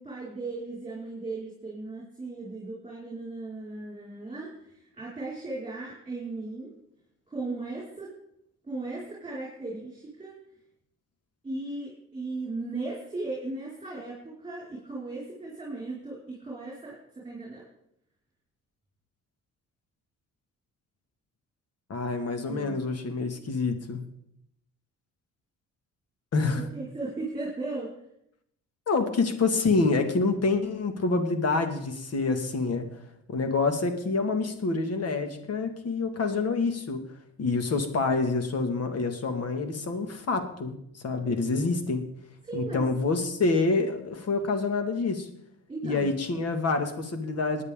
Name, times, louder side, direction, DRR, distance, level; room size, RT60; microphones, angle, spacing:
voice 1, 0.0-6.7 7.3-8.1 8.6-10.4 11.4-17.6 22.4-22.8 26.5-27.9 42.4-42.8 45.7-46.1, right 3 dB, 15° right, -5 dB, 5.0 m, -37 dB
voice 2, 21.9-24.0 26.3-26.7 28.9-33.0 33.3-37.0 37.4-42.0 42.5-45.3 45.8-47.6, left 3 dB, 55° left, 7 dB, 2.0 m, -27 dB
19.0 x 9.5 x 3.7 m, 0.75 s
cardioid pair, 90°, 30 cm